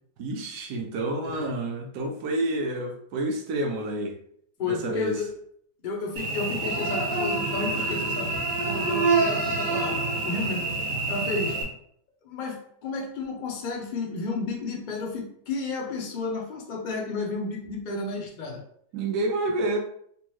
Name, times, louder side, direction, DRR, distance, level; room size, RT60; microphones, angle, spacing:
voice 1, 0.2-4.2 4.7-5.2 18.9-19.8, right 1 dB, 75° right, 2 dB, 1.3 m, -29 dB
voice 2, 4.6-5.3 5.8-10.7 11.1-11.6 12.2-18.6, left 3 dB, 70° left, 0 dB, 0.4 m, -32 dB
Cricket / Buzz, 6.2-11.6, right 3 dB, 60° right, 1.4 m, -27 dB
3.4 x 3.0 x 3.0 m, 0.66 s
omnidirectional pair, 1.8 m